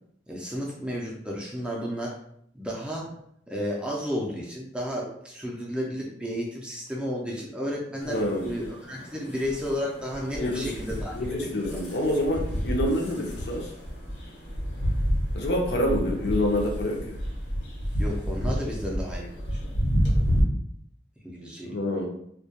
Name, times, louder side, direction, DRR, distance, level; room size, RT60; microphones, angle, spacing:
voice 1, 0.3-2.2 2.5-3.1 3.5-11.1 11.4-11.8 18.0-19.8 21.2-21.8, equal, 5° right, -3 dB, 0.4 m, -33 dB
sound 1, 8.0-20.4, equal, 80° left, 0.9 m, -30 dB
voice 2, 8.0-8.4 10.4-10.7 11.1-13.7 15.3-17.2 21.7-22.1, left 1 dB, 65° left, 0 dB, 0.5 m, -27 dB
2.2 x 2.1 x 2.8 m, 0.70 s
head